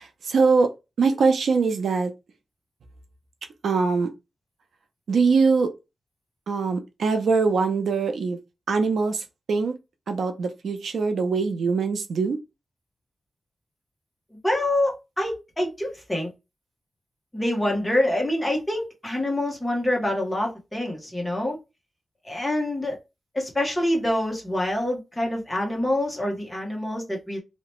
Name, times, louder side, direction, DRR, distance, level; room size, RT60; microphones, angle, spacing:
voice 1, 0.0-2.1 3.6-4.1 5.1-5.7 6.5-8.4 8.7-9.8 10.1-12.4, right 4 dB, 90° right, 0.5 m, -23 dB
voice 2, 14.4-16.3 17.3-21.6 22.3-23.0 23.3-27.4, left 1 dB, 10° left, 0.9 m, -26 dB
2.8 x 2.1 x 3.0 m
wide cardioid pair, 155°, 0 cm